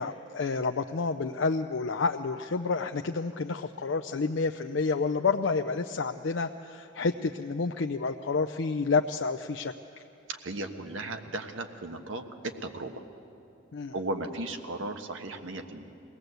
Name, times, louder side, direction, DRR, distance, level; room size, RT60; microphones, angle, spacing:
voice 1, 0.0-9.7 13.7-13.9, left 4 dB, 70° left, 5 dB, 0.5 m, -29 dB
voice 2, 10.3-12.9 13.9-15.8, right 2 dB, 85° right, 6 dB, 1.3 m, -36 dB
22.5 x 17.5 x 8.0 m, 2.7 s
head